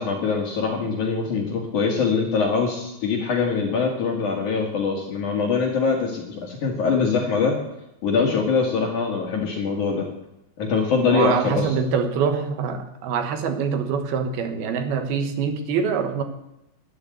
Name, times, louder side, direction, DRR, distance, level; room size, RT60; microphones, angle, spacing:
voice 1, 0.0-7.6 8.0-10.1 10.6-11.8, left 5 dB, 55° left, 0 dB, 3.1 m, -23 dB
voice 2, 10.9-16.2, right 6 dB, 75° right, 7 dB, 3.0 m, -25 dB
12.5 x 12.0 x 7.9 m, 0.87 s
omnidirectional pair, 4.7 m